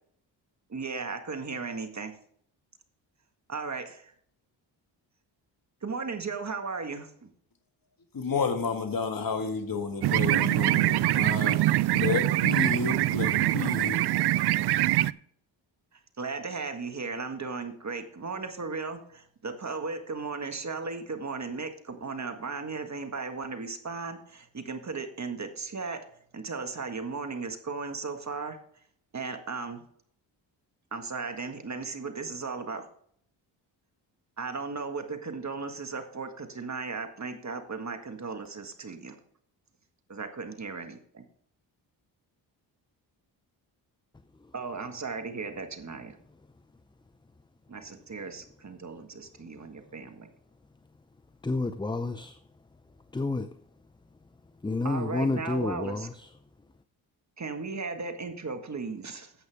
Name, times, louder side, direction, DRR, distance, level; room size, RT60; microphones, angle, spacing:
voice 1, 0.7-2.1 3.5-4.1 5.8-7.3 15.9-26.0 26.3-28.6 29.1-29.8 30.9-32.8 34.4-39.2 40.1-41.2 44.5-46.2 47.7-50.3 54.8-56.1 57.4-59.3, right 4 dB, 35° right, 1.7 m, -36 dB
voice 2, 8.1-14.1, left 5 dB, 45° left, 1.8 m, -31 dB
sound 1, 10.0-15.1, right 15 dB, 55° right, 0.5 m, -24 dB
voice 3, 51.4-52.4 53.1-53.5 54.6-56.1, left 3 dB, 10° left, 0.6 m, -29 dB
11.5 x 8.1 x 3.5 m
supercardioid pair, 50°, 48 cm